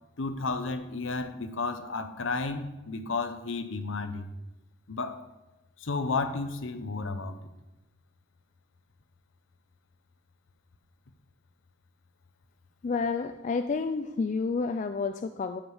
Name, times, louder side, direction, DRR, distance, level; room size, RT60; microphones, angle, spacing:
voice 1, 0.2-4.3 4.9-5.3 5.8-7.5, left 3 dB, 65° left, 10 dB, 0.8 m, -32 dB
voice 2, 12.8-15.6, left 4 dB, 35° left, 8 dB, 0.3 m, -30 dB
12.5 x 5.0 x 4.8 m, 0.99 s
head